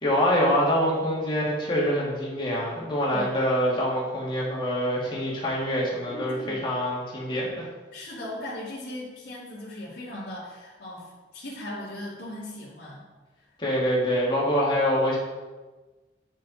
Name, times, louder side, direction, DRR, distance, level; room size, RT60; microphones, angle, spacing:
voice 1, 0.0-7.7 13.6-15.2, equal, 30° left, -5 dB, 2.4 m, -25 dB
voice 2, 6.1-6.6 7.9-11.1 11.3-13.0, left 1 dB, 70° left, -11 dB, 2.5 m, -38 dB
10.0 x 6.3 x 4.2 m, 1.3 s
head